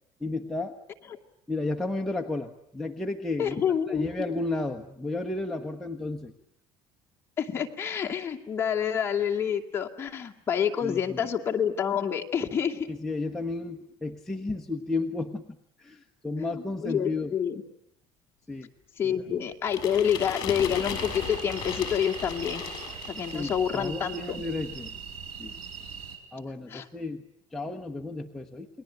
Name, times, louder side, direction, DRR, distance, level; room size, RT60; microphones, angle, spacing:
voice 1, 0.2-0.8 1.5-3.6 3.9-6.3 10.8-11.3 12.9-15.4 15.8-17.4 18.5-18.7 19.0-19.1 23.3-24.9 25.4-25.5 26.3-27.2 27.5-28.7, left 2 dB, 5° left, 2 dB, 1.2 m, -33 dB
voice 2, 3.4-4.0 7.4-12.9 16.4-17.6 19.0-22.6 23.1-24.4 26.7-26.9, left 8 dB, 25° left, 1 dB, 2.4 m, -28 dB
sound 1, 19.7-23.7, left 7 dB, 40° left, 6.9 m, -37 dB
sound 2, 20.7-26.2, right 6 dB, 85° right, 5.4 m, -41 dB
29.5 x 21.5 x 9.2 m, 0.71 s
cardioid pair, 160°, 10 cm